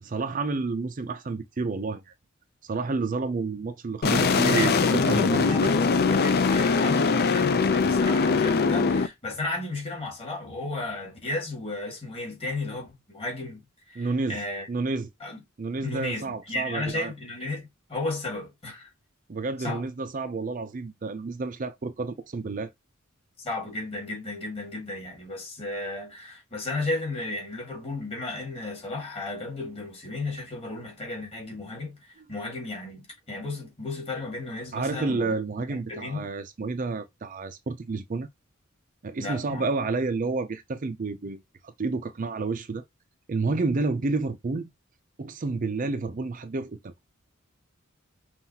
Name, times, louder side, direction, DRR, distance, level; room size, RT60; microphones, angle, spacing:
voice 1, 0.0-2.1 2.6-5.7 14.0-14.4 14.7-15.1 15.6-17.1 19.3-22.7 34.7-38.3 39.0-42.8 43.3-44.7 45.2-46.9, right 3 dB, 40° right, 0.4 m, -30 dB
sound 1, 4.0-9.1, left 4 dB, 50° left, 0.4 m, -22 dB
voice 2, 4.1-14.7 15.2-15.4 15.8-18.9 19.6-19.9 23.4-35.4 35.7-36.3 39.2-39.6, left 2 dB, 30° left, 1.9 m, -34 dB
5.6 x 2.5 x 2.8 m
head